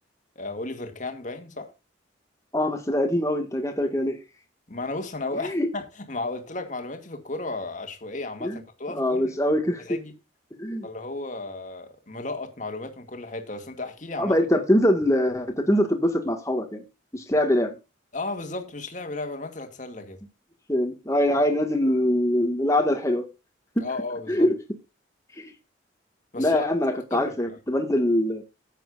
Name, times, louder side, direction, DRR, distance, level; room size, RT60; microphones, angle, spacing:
voice 1, 0.4-1.7 4.7-9.3 9.8-10.1 10.8-14.4 18.1-20.2 23.8-24.5 26.3-26.6 27.1-27.6, left 2 dB, 40° left, 2.2 m, -34 dB
voice 2, 2.5-4.2 5.5-5.7 8.4-8.6 8.9-10.0 10.6-10.9 14.2-16.8 17.1-17.7 20.7-23.3 23.8-23.9 24.3-24.6 25.4-25.5 26.4-28.4, left 1 dB, 15° left, 1.9 m, -23 dB
14.0 x 9.2 x 2.6 m
head